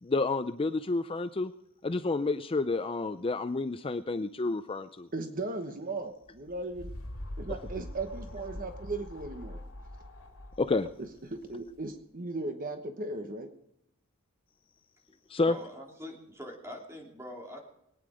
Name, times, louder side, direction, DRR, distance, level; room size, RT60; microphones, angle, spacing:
voice 1, 0.0-1.5 1.8-5.1 10.6-10.9 15.3-15.5, left 3 dB, 25° left, 10 dB, 0.4 m, -29 dB
voice 2, 5.1-6.9 7.4-9.6 11.0-13.5, right 2 dB, 40° right, 6 dB, 1.0 m, -37 dB
sound 1, 6.3-11.9, left 1 dB, 70° left, 3.0 m, -43 dB
voice 3, 15.4-17.7, left 1 dB, 10° right, 0 dB, 2.9 m, -44 dB
22.5 x 9.5 x 5.0 m, 0.82 s
head